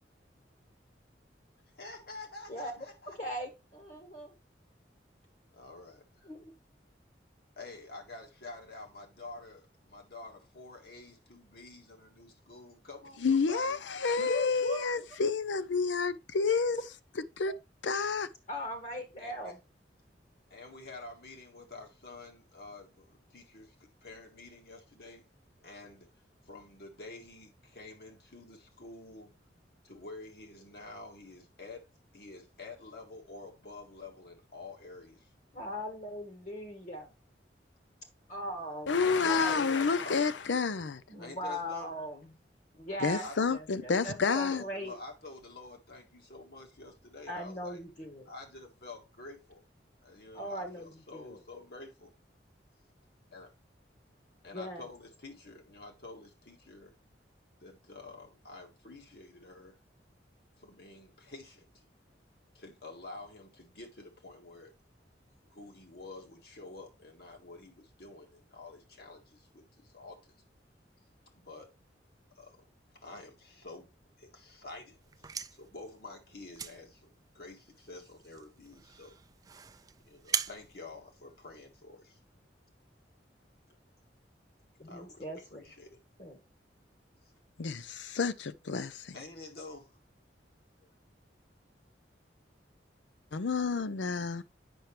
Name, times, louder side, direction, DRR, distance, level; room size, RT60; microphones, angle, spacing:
voice 1, 1.8-3.2 5.5-6.0 7.6-13.8 19.2-19.5 20.5-23.1 23.3-23.7 24.0-25.2 25.6-26.1 26.5-29.4 29.8-31.8 32.1-35.2 39.0-40.2 41.2-41.9 43.2-43.4 44.2-47.8 48.3-49.6 50.0-52.1 53.3-53.5 54.4-56.9 57.6-59.7 60.6-61.6 62.6-64.7 65.5-70.2 71.4-71.7 72.4-72.6 73.0-73.9 74.2-74.9 75.6-79.1 80.1-82.1 84.9-86.0 89.1-89.9, left 2 dB, 60° left, 1.8 m, -48 dB
voice 2, 2.5-2.8 3.2-4.3 6.2-6.5 14.2-14.9 17.5-17.6 18.5-19.6 35.5-37.1 38.3-38.9 39.2-39.7 41.1-42.3 42.7-44.9 47.3-48.3 50.3-51.4 54.5-54.8 84.8-85.6 86.2-86.4, equal, 40° left, 1.5 m, -39 dB
voice 3, 13.2-16.8 17.4-17.5 17.8-18.3 38.9-41.0 43.0-44.6 87.6-89.2 93.3-94.4, left 5 dB, 90° left, 0.6 m, -29 dB
sound 1, 75.0-81.8, right 7 dB, 20° right, 0.3 m, -41 dB
7.9 x 5.9 x 3.3 m
head